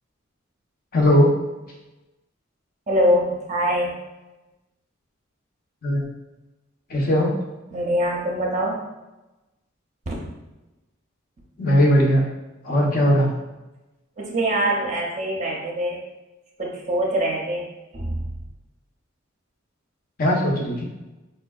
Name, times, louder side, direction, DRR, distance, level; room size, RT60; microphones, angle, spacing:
voice 1, 0.9-1.3 5.8-6.0 6.9-7.4 11.6-12.3 12.6-13.3 20.2-20.8, equal, 45° left, -1 dB, 0.7 m, -18 dB
voice 2, 2.9-4.0 7.7-8.8 10.1-10.2 14.2-16.0 16.6-17.6 17.9-18.2, equal, 35° right, -2 dB, 0.5 m, -23 dB
4.4 x 2.6 x 2.3 m, 1.0 s
head